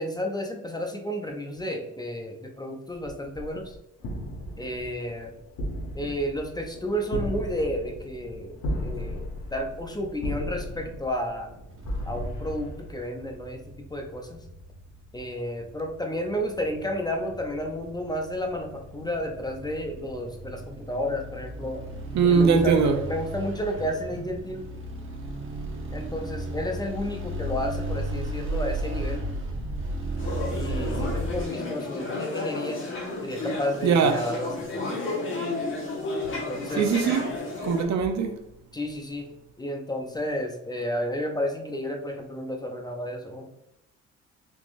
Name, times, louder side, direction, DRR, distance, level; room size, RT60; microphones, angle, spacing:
voice 1, 0.0-3.7 4.6-5.3 5.9-8.6 8.8-11.5 12.0-14.4 15.1-21.8 22.2-24.7 25.9-29.2 30.5-32.8 33.2-34.8 36.3-36.9 38.7-39.2 39.6-43.5, equal, 15° left, 0.5 m, -32 dB
sound 1, 4.0-13.3, equal, 75° left, 0.8 m, -36 dB
sound 2, 11.6-31.4, right 1 dB, 45° right, 1.0 m, -35 dB
voice 2, 22.1-23.0 33.8-34.2 36.8-37.3 37.6-38.4, right 5 dB, 65° right, 0.6 m, -21 dB
sound 3, 30.2-37.8, left 2 dB, 40° left, 1.2 m, -32 dB
3.7 x 2.9 x 2.5 m
cardioid pair, 90°, 30 cm